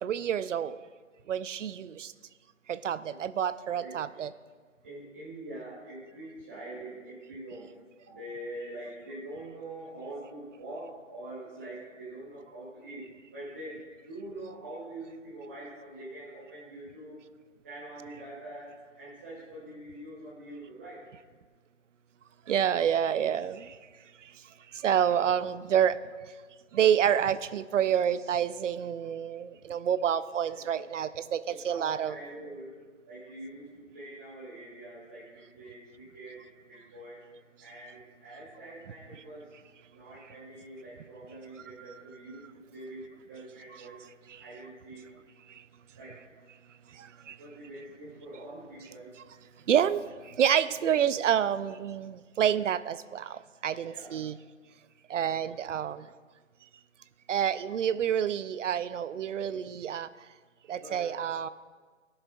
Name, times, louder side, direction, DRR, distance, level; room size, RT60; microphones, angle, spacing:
voice 1, 0.0-0.8 1.3-2.1 2.7-4.3 22.5-23.8 24.2-26.0 26.7-32.2 43.7-43.8 45.5-45.6 46.9-47.4 49.7-54.4 55.1-56.1 57.3-60.1 60.7-61.5, right 9 dB, 65° right, 15 dB, 0.5 m, -28 dB
voice 2, 4.8-7.7 8.0-17.2 17.6-21.0 30.5-30.8 31.5-32.8 33.0-37.2 37.6-39.5 39.9-44.0 44.3-45.0 45.9-46.2 47.4-49.2 49.4-49.7 53.9-54.2 55.1-55.3 60.8-61.2, right 1 dB, 10° right, -10 dB, 0.6 m, -44 dB
19.0 x 6.5 x 2.3 m, 1.5 s
hypercardioid pair, 155°, 40 cm